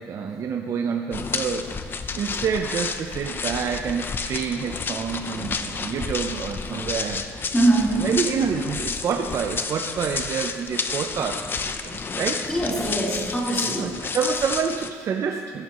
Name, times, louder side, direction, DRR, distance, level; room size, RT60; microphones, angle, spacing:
voice 1, 0.0-1.7 2.1-7.2 7.8-11.4 11.8-12.5 13.8-15.6, right 6 dB, 55° right, 4 dB, 0.8 m, -27 dB
sound 1, 1.1-14.9, left 5 dB, 35° left, 0.8 m, -31 dB
voice 2, 7.5-8.1 12.5-13.9, right 2 dB, 10° left, -6 dB, 4.4 m, -22 dB
16.0 x 15.5 x 3.2 m, 2.1 s
cardioid pair, 85°, 6 cm